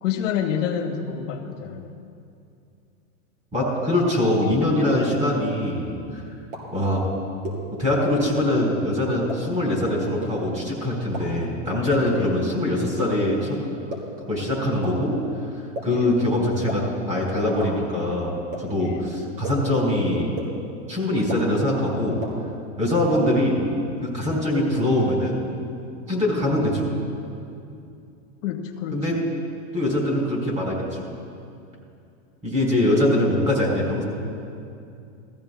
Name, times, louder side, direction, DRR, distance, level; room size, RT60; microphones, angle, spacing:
voice 1, 0.0-1.9 12.1-12.4 14.4-14.5 15.9-16.1 18.8-19.1 23.0-23.2 28.4-29.2, left 8 dB, 70° left, 4 dB, 1.4 m, -29 dB
voice 2, 3.5-6.2 6.7-7.1 7.7-13.6 14.3-15.1 15.8-20.3 20.9-22.2 22.8-23.6 24.0-25.4 26.1-26.9 28.9-29.2 29.7-31.0 32.4-34.0, left 1 dB, 20° right, -3 dB, 3.0 m, -23 dB
sound 1, 6.5-6.6 7.4-7.5 8.4-8.5 9.3-9.4 10.2-10.3 11.1-11.2 12.1-12.2 13.0-13.1 13.9-14.0 14.8-14.9 15.8-15.9 16.7-16.8 17.6-17.7 18.5-18.6 19.4-19.5 20.4-20.5 21.3-21.4 22.2-22.3 23.1-23.2, right 1 dB, 50° right, 3.2 m, -31 dB
18.0 x 14.5 x 2.2 m, 2.5 s
supercardioid pair, 155°, 39 cm